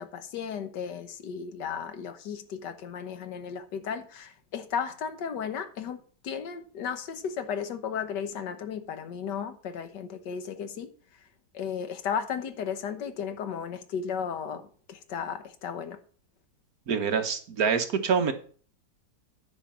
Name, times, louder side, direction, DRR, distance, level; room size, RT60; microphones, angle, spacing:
voice 1, 0.0-6.0 6.2-10.9 11.5-16.0, left 7 dB, 90° left, 1.6 m, -34 dB
voice 2, 16.9-18.3, right 6 dB, 60° right, 1.5 m, -26 dB
9.8 x 5.1 x 7.2 m
omnidirectional pair, 1.8 m